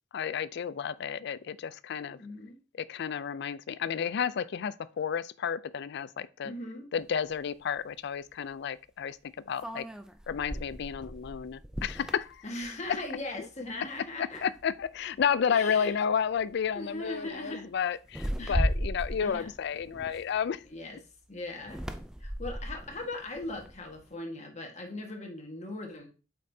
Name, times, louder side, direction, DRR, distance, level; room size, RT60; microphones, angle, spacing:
voice 1, 0.1-2.2 2.8-6.5 6.9-9.2 9.5-9.9 10.3-12.4 14.2-20.6, left 7 dB, 60° left, 0.4 m, -31 dB
voice 2, 2.1-2.6 6.4-6.9 12.4-14.4 15.5-15.9 16.7-17.7 18.4-18.7 19.2-19.5 20.6-21.0 21.3-21.8 22.2-26.1, left 2 dB, 35° left, 1.5 m, -39 dB
sound 1, 7.3-7.4 9.6-13.2 13.6-13.9 14.3-15.0 15.8-16.0 16.4-16.7 18.1-20.7 21.6-24.0, equal, 5° right, 0.4 m, -36 dB
7.7 x 5.4 x 2.7 m
head